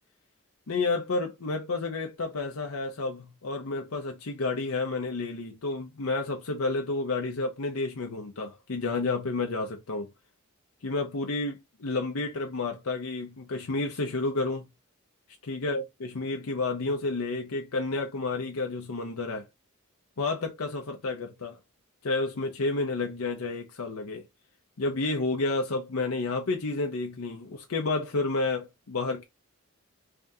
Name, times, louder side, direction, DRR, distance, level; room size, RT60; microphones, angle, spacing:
voice 1, 0.7-10.1 10.8-14.6 15.4-19.4 20.2-21.6 22.0-24.2 24.8-29.2, left 3 dB, 80° left, 0.7 m, -30 dB
3.4 x 2.7 x 3.5 m
head